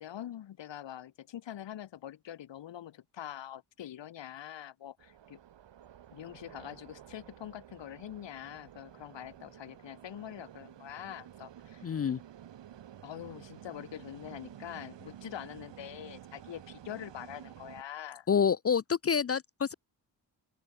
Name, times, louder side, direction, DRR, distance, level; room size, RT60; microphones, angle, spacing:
voice 1, 0.0-5.4 6.1-11.9 13.0-18.3, left 11 dB, 75° left, 2.6 m, -44 dB
sound 1, 5.0-17.8, right 10 dB, 75° right, 3.6 m, -52 dB
voice 2, 11.8-12.2 18.3-19.7, left 7 dB, 35° left, 0.6 m, -27 dB
open air
cardioid pair, 60°, 43 cm